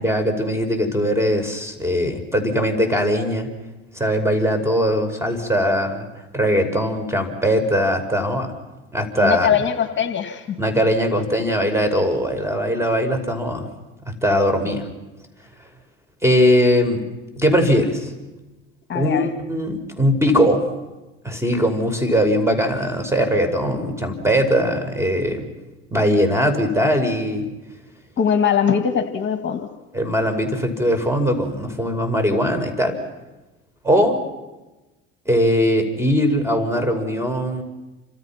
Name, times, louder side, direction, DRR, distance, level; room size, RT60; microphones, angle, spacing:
voice 1, 0.0-3.5 3.9-6.1 6.3-8.5 8.9-9.5 10.6-13.6 14.1-14.9 16.2-17.0 17.4-18.1 18.9-20.6 21.2-25.4 25.9-27.5 29.9-33.0 33.8-34.2 35.3-37.6, equal, 10° right, 7 dB, 5.7 m, -20 dB
voice 2, 9.2-10.6 18.9-19.3 28.2-29.7, left 8 dB, 35° left, 7 dB, 2.3 m, -21 dB
29.0 x 26.5 x 6.0 m, 1.1 s
supercardioid pair, 85°, 31 cm